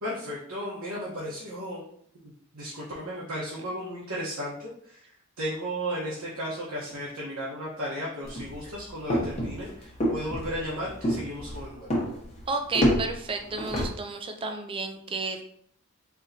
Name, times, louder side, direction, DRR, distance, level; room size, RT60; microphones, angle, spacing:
voice 1, 0.0-1.8 2.2-5.0 5.4-11.9, equal, 75° right, -7 dB, 1.1 m, -35 dB
sound 1, 8.2-13.9, equal, 30° left, 1.0 m, -29 dB
voice 2, 12.5-15.4, right 3 dB, 25° right, 6 dB, 0.4 m, -32 dB
4.6 x 3.0 x 2.7 m, 0.64 s
head